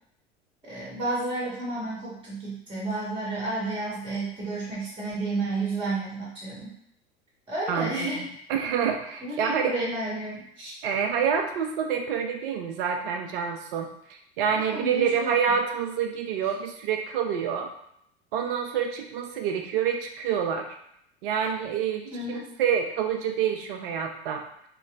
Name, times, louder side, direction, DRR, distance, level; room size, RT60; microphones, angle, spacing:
voice 1, 0.6-6.7 7.5-8.3 9.2-10.7 14.5-15.3 22.1-22.5, right 2 dB, 15° right, -6 dB, 1.2 m, -31 dB
voice 2, 7.7-9.7 10.8-17.7 18.3-20.8 21.2-24.5, right 7 dB, 60° right, 4 dB, 0.5 m, -27 dB
2.9 x 2.9 x 2.4 m, 0.72 s
figure-of-eight pair, 75°, 32 cm